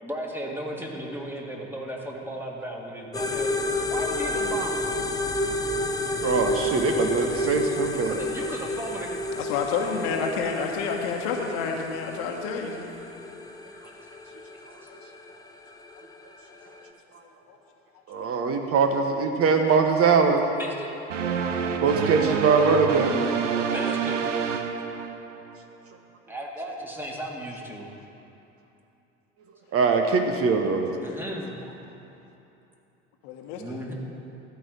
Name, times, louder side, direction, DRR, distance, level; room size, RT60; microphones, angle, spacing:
voice 1, 0.0-3.5 3.9-4.9 7.9-9.1 20.6-20.9 23.6-24.2 26.3-27.9 31.0-31.6 33.6-33.9, right 1 dB, 5° right, -1 dB, 1.9 m, -35 dB
sound 1, 3.1-16.9, left 1 dB, 10° left, 0.8 m, -30 dB
voice 2, 6.2-8.1 18.1-20.5 21.8-23.2 29.7-30.9, right 5 dB, 40° right, 5 dB, 1.0 m, -22 dB
voice 3, 9.3-12.9 16.5-16.6 17.5-17.6 18.4-18.5 21.3-21.4 30.7-30.8 33.2-33.8, left 5 dB, 60° left, 2 dB, 1.3 m, -29 dB
sound 2, 21.1-25.6, right 6 dB, 85° right, 0.6 m, -27 dB
13.5 x 4.7 x 8.3 m, 2.9 s
figure-of-eight pair, 70°, 36 cm